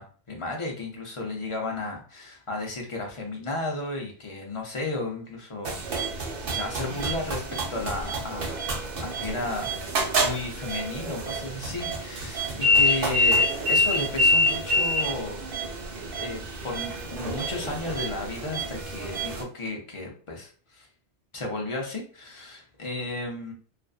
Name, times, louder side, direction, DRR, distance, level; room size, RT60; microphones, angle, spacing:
voice 1, 0.0-5.8 6.5-7.4 7.7-8.6 9.0-15.4 16.2-20.9 21.3-23.5, left 2 dB, 40° left, 0 dB, 0.5 m, -33 dB
sound 1, 5.6-19.4, left 1 dB, 60° right, 0.8 m, -27 dB
2.5 x 2.4 x 2.3 m, 0.41 s
omnidirectional pair, 1.1 m